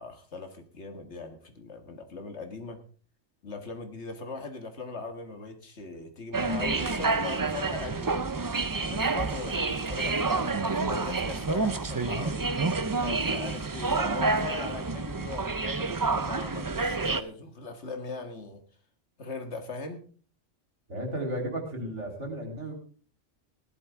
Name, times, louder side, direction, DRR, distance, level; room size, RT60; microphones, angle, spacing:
voice 1, 0.0-2.8 3.4-8.4 8.9-18.6 19.2-20.0, left 3 dB, 65° left, 6 dB, 2.0 m, -40 dB
sound 1, 6.3-17.2, right 3 dB, 30° right, 0.3 m, -28 dB
voice 2, 20.9-22.7, right 1 dB, 70° right, 2 dB, 4.0 m, -34 dB
16.0 x 11.5 x 3.6 m, 0.39 s
omnidirectional pair, 1.2 m